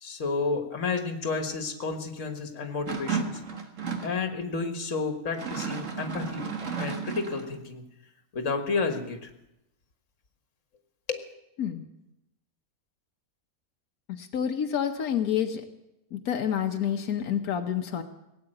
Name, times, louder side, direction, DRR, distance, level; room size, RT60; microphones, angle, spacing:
voice 1, 0.0-3.4 4.0-6.5 6.8-7.8 8.3-9.3 11.1-11.2, left 4 dB, 60° left, 6 dB, 1.9 m, -31 dB
sound 1, 2.9-4.2 5.3-7.5, right 6 dB, 60° right, 1.9 m, -33 dB
voice 2, 14.1-15.6 16.1-18.0, left 9 dB, 90° left, 4 dB, 1.4 m, -28 dB
17.5 x 8.6 x 8.9 m, 0.90 s
omnidirectional pair, 1.5 m